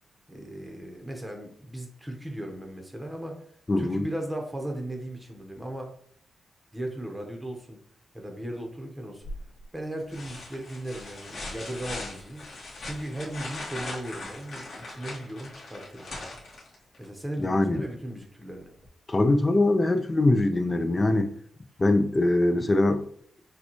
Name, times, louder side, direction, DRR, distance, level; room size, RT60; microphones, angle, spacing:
voice 1, 0.3-3.4 3.8-5.9 6.7-7.8 8.1-9.2 9.7-12.5 12.8-16.1 17.0-18.7 21.0-21.2, right 1 dB, 5° right, 0.8 m, -37 dB
voice 2, 3.7-4.1 17.4-17.8 19.1-21.3 21.8-23.0, left 2 dB, 20° left, 0.4 m, -22 dB
Plastic bag opened up and pack of cookies taken out, 9.2-9.6 10.1-17.0 18.8-18.9, left 2 dB, 55° left, 1.6 m, -40 dB
6.6 x 2.3 x 2.9 m
wide cardioid pair, 145°, 0 cm